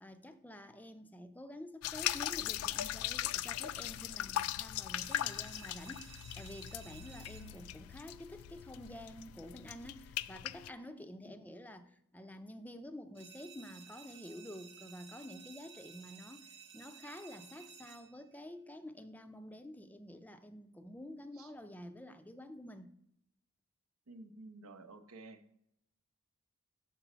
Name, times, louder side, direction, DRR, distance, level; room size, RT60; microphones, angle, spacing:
voice 1, 0.0-16.5 16.7-22.9, left 1 dB, 10° left, 0.4 m, -49 dB
sound 1, 1.8-10.7, left 13 dB, 85° left, 0.3 m, -39 dB
sound 2, 4.9-7.8 13.1-18.3, right 7 dB, 25° right, 0.8 m, -55 dB
voice 2, 24.1-25.4, right 2 dB, 80° right, 0.7 m, -53 dB
6.9 x 4.1 x 6.0 m
head